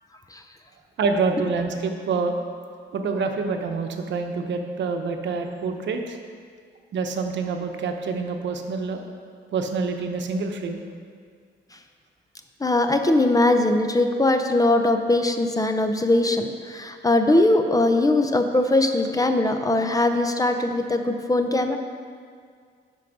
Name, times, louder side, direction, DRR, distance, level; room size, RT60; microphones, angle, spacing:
voice 1, 1.0-2.4 2.9-6.2 6.9-9.0 9.5-10.8, right 4 dB, 65° right, 5 dB, 0.9 m, -26 dB
voice 2, 12.6-21.8, left 2 dB, 15° left, 6 dB, 0.6 m, -21 dB
10.5 x 4.7 x 5.9 m, 2.1 s
cardioid pair, 90°, 20 cm